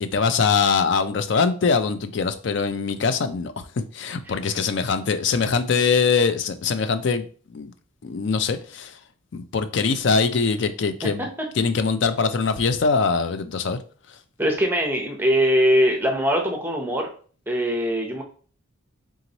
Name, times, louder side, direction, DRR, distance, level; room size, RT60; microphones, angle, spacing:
voice 1, 0.0-3.5 3.9-7.7 8.0-9.0 9.3-11.3 11.5-13.8, left 5 dB, 55° left, 0.4 m, -22 dB
voice 2, 14.4-17.1 17.5-18.2, equal, 10° right, 0.7 m, -21 dB
3.6 x 3.0 x 3.9 m
head